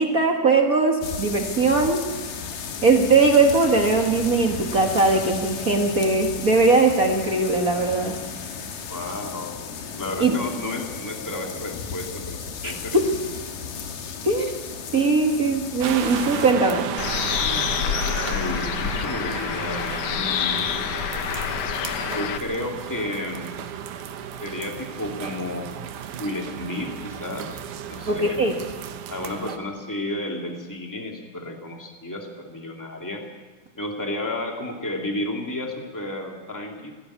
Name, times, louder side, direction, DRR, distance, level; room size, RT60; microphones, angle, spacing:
voice 1, 0.0-2.0 2.8-8.1 10.2-10.3 12.6-12.7 14.2-14.5 14.9-16.9 28.1-28.5, right 3 dB, 35° right, 2 dB, 1.5 m, -20 dB
sound 1, 1.0-16.5, left 6 dB, 90° left, 3.3 m, -34 dB
voice 2, 8.9-13.0 17.4-20.7 22.1-23.5 24.4-25.7 26.2-27.6 27.9-28.4 29.1-33.2 33.7-36.9, left 1 dB, 5° left, 1 dB, 2.0 m, -32 dB
sound 2, 15.8-29.6, right 8 dB, 75° right, 2.5 m, -34 dB
Bird, 17.0-22.4, left 10 dB, 70° left, 1.7 m, -27 dB
19.0 x 16.5 x 8.6 m, 1.3 s
omnidirectional pair, 3.7 m